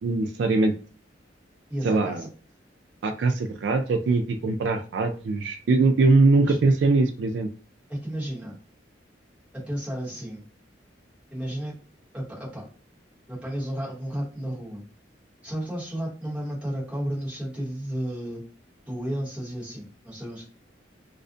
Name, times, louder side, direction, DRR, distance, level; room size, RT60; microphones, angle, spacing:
voice 1, 0.0-0.7 1.8-2.3 3.0-7.5, right 3 dB, 70° right, 5 dB, 0.3 m, -22 dB
voice 2, 1.7-2.3 6.4-6.6 7.9-8.6 9.5-10.5 11.3-11.8 12.1-12.7 13.3-14.8 15.4-18.4 18.9-20.5, right 1 dB, 5° right, -6 dB, 0.9 m, -32 dB
2.4 x 2.1 x 2.5 m, 0.37 s
head